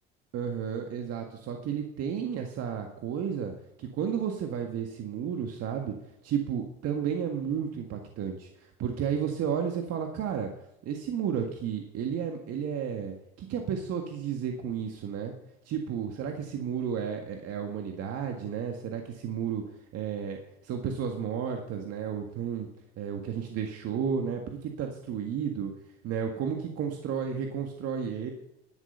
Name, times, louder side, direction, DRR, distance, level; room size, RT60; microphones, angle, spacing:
voice 1, 0.3-3.5 3.8-5.9 6.2-10.5 10.8-15.3 15.7-19.6 19.9-22.7 23.0-25.7 26.0-28.3, right 7 dB, 55° right, 3 dB, 1.8 m, -32 dB
11.0 x 10.5 x 5.6 m, 0.82 s
hypercardioid pair, 70°, 31 cm